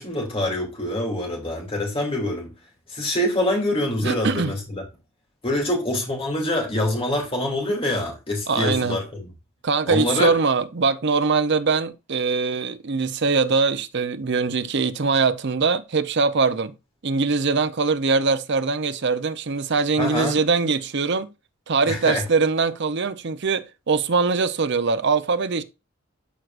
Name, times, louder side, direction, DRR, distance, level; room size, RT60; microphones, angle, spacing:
voice 1, 0.0-2.5 2.9-4.8 5.4-9.3 9.9-10.3 20.0-20.4 21.9-22.2, left 1 dB, 25° left, 2.7 m, -25 dB
voice 2, 4.0-4.5 8.5-9.0 9.6-16.7 17.0-21.3 21.7-25.6, right 4 dB, 55° right, 0.7 m, -22 dB
12.5 x 4.7 x 2.5 m
head